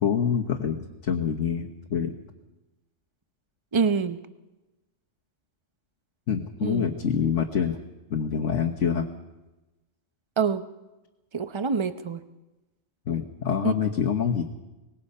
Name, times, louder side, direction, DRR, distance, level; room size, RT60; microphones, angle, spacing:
voice 1, 0.0-2.1 6.3-7.8 8.1-9.1 13.1-14.4, left 7 dB, 85° left, 2 dB, 1.5 m, -26 dB
voice 2, 3.7-4.2 6.6-6.9 10.4-10.6 11.3-12.2 13.6-13.7, right 5 dB, 25° right, 11 dB, 0.8 m, -25 dB
24.0 x 20.0 x 5.5 m, 1.0 s
omnidirectional pair, 1.2 m